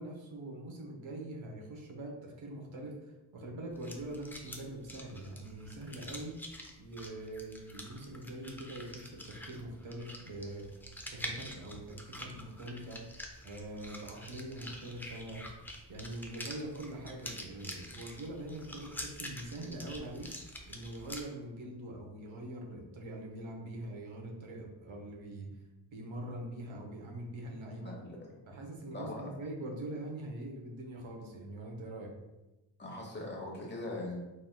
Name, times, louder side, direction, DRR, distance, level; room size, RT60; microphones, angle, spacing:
voice 1, 0.0-6.3 6.8-10.6 11.1-13.0 13.4-15.5 15.9-20.3 20.7-25.5 25.9-27.9 28.5-32.1, right 1 dB, 75° right, 0 dB, 1.0 m, -43 dB
sound 1, 3.7-21.2, left 1 dB, 5° left, 0.4 m, -47 dB
voice 2, 27.8-28.4 28.9-29.3 32.8-34.2, left 2 dB, 20° left, -2 dB, 1.0 m, -41 dB
4.1 x 3.8 x 2.2 m, 1.0 s
cardioid pair, 100°, 48 cm